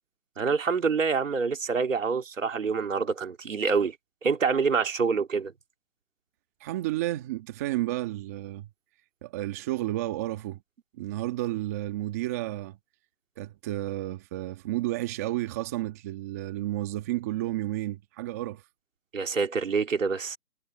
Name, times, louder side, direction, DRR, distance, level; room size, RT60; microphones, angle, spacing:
voice 1, 0.4-3.9 4.2-5.5 19.1-20.4, right 5 dB, 55° right, 2.8 m, -26 dB
voice 2, 6.6-8.7 9.2-10.6 11.0-12.8 13.4-18.6, right 15 dB, 10° right, 1.4 m, -31 dB
hypercardioid pair, 165°, 47 cm